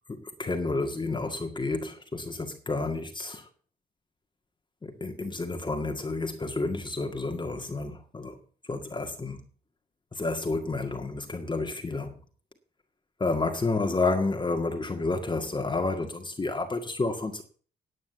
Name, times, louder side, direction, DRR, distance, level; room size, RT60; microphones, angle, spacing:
voice 1, 0.1-3.5 4.8-8.4 8.7-9.4 10.1-12.1 13.2-17.4, left 3 dB, 25° left, 1.9 m, -30 dB
9.7 x 8.4 x 8.1 m
cardioid pair, 90°, 20 cm